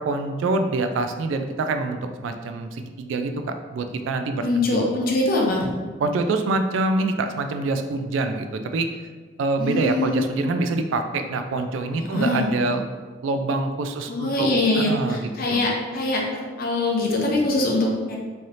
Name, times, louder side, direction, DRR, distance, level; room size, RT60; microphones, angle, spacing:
voice 1, 0.0-4.8 6.0-8.9 9.4-12.8 13.2-14.5 14.7-15.2 15.5-15.6, right 3 dB, 80° right, 7 dB, 0.3 m, -25 dB
voice 2, 4.4-5.6 9.6-10.2 11.9-12.5 14.1-18.2, left 2 dB, 50° left, -1 dB, 0.6 m, -23 dB
3.2 x 2.7 x 2.5 m, 1.4 s
head